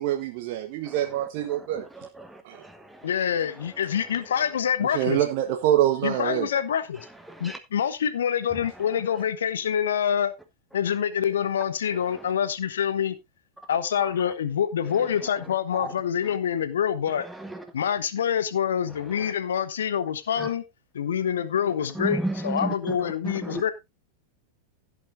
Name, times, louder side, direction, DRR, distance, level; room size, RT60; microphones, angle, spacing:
voice 1, 0.0-1.8 2.4-2.6 4.9-6.5, right 12 dB, 45° right, 1.1 m, -25 dB
voice 2, 1.9-3.1 6.5-6.6 7.3-7.6 15.8-15.9 17.4-17.6 20.4-20.5 22.0-23.0 23.2-23.6, right 1 dB, 5° right, 1.2 m, -33 dB
voice 3, 3.0-5.2 6.0-7.1 7.4-10.3 10.7-13.2 13.7-17.3 17.7-20.6 20.9-23.7, left 8 dB, 65° left, 1.1 m, -26 dB
16.0 x 8.2 x 2.6 m
figure-of-eight pair, 90°, 0 cm